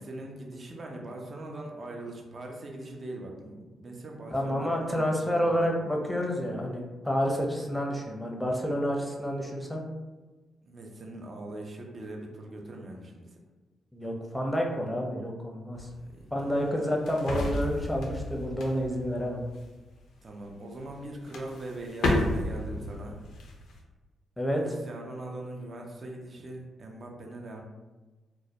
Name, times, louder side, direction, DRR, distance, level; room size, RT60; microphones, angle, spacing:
voice 1, 0.0-5.7 8.4-8.5 10.6-13.4 16.0-16.6 20.2-23.2 24.6-27.6, right 1 dB, 45° right, 0 dB, 0.5 m, -41 dB
voice 2, 4.3-9.8 13.9-15.9 16.3-19.4 24.4-24.6, equal, 5° left, 0 dB, 0.6 m, -29 dB
sound 1, 15.7-20.1 20.9-21.0 21.3-23.8, left 1 dB, 70° left, 0.4 m, -32 dB
2.2 x 2.1 x 2.8 m, 1.2 s
hypercardioid pair, 40°, 0 cm